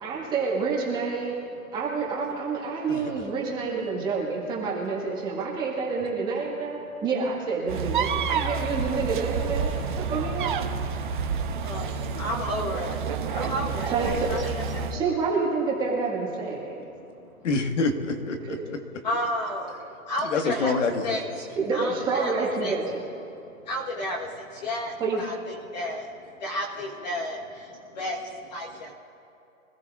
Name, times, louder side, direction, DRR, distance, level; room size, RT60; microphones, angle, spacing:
voice 1, 0.0-1.3 1.7-9.7 10.1-10.5 13.9-14.3 14.9-16.8 21.6-22.9 25.0-25.2, right 4 dB, 10° right, -4 dB, 1.7 m, -28 dB
sound 1, 7.7-15.0, right 6 dB, 35° right, 0.9 m, -29 dB
voice 2, 11.6-13.0 13.3-15.0 19.0-19.8 20.1-20.7 21.0-21.5 21.7-22.7 23.6-26.1 26.4-28.9, left 1 dB, 30° left, -2 dB, 1.3 m, -32 dB
voice 3, 17.4-18.8 20.2-21.2, left 3 dB, 55° left, 4 dB, 1.7 m, -27 dB
25.0 x 14.0 x 2.5 m, 2.7 s
hypercardioid pair, 165°, 42 cm